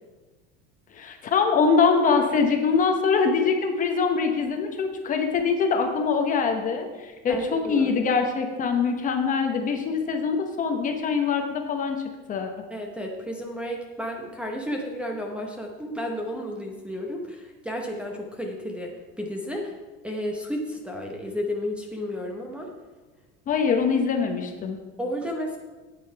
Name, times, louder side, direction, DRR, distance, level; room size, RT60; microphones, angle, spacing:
voice 1, 0.9-12.0 12.3-12.5 23.5-24.8, left 5 dB, 25° left, 5 dB, 0.9 m, -23 dB
voice 2, 7.3-8.1 12.7-19.7 20.0-22.7 25.0-25.6, equal, 5° right, 1 dB, 0.8 m, -32 dB
10.0 x 8.7 x 4.5 m, 1.2 s
cardioid pair, 170°, 30 cm